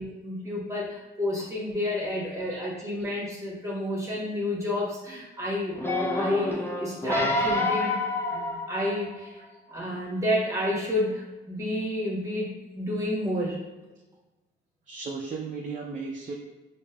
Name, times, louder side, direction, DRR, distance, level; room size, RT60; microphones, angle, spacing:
voice 1, 0.0-5.8 6.1-8.0 8.3-9.4 9.7-13.6, left 1 dB, 15° right, -5 dB, 1.2 m, -30 dB
voice 2, 2.5-2.8 6.8-7.0 7.8-7.9 9.4-9.5 14.9-16.3, right 4 dB, 40° right, -1 dB, 0.5 m, -36 dB
sound 1, 5.7-9.3 9.9-10.0, left 2 dB, 10° left, 0.5 m, -28 dB
5.2 x 2.8 x 2.3 m, 1.2 s
cardioid pair, 90°, 20 cm